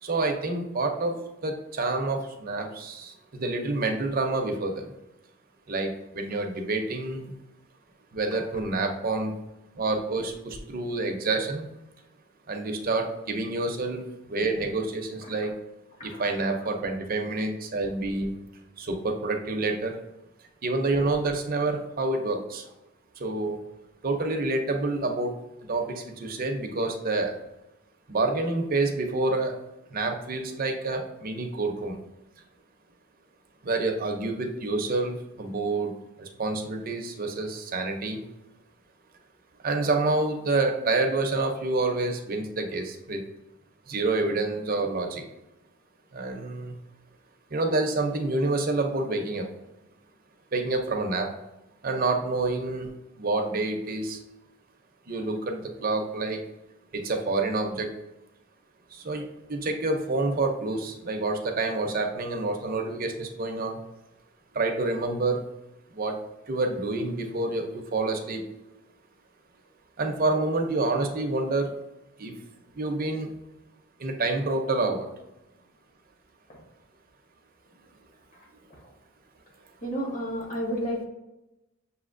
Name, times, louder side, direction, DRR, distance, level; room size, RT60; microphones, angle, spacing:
voice 1, 0.0-4.9 5.7-7.3 8.1-9.3 9.8-11.7 12.5-15.5 16.0-18.3 18.8-20.0 20.6-22.6 23.2-23.6 24.0-25.3 25.7-27.3 28.1-29.5 29.9-32.0 33.6-38.2 39.6-43.2 43.9-45.2 46.1-46.7 47.5-49.5 50.5-51.3 51.8-52.9 53.2-54.2 55.1-56.4 56.9-57.9 58.9-59.2 59.5-63.8 64.5-65.4 65.9-66.1 66.5-68.5 70.0-71.7 72.2-72.3 72.7-73.3 74.0-75.1, right 2 dB, 45° right, 3 dB, 0.6 m, -28 dB
voice 2, 79.8-81.1, equal, 35° left, -2 dB, 1.2 m, -31 dB
6.3 x 2.8 x 2.6 m, 0.95 s
head